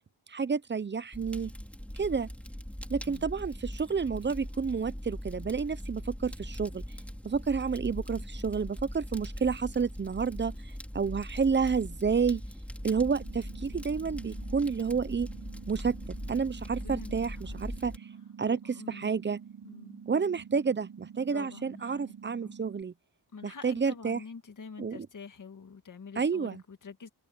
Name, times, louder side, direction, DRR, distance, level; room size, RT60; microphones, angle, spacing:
voice 1, 0.3-1.5 1.9-2.3 2.9-6.8 7.2-10.5 10.9-12.4 12.8-15.3 15.7-17.9 18.4-19.4 20.1-22.9 23.4-24.2 24.8-25.1 26.2-26.6, right 5 dB, 25° right, 0.7 m, -30 dB
Fire, 1.1-18.0, equal, 5° left, 4.8 m, -41 dB
sound 1, 12.8-22.8, right 7 dB, 60° right, 5.0 m, -48 dB
voice 2, 16.8-17.1 17.5-17.6 18.5-19.1 19.6-20.0 21.3-22.0 22.4-22.6 23.3-27.1, left 5 dB, 45° left, 2.1 m, -46 dB
wide cardioid pair, 100°, 42 cm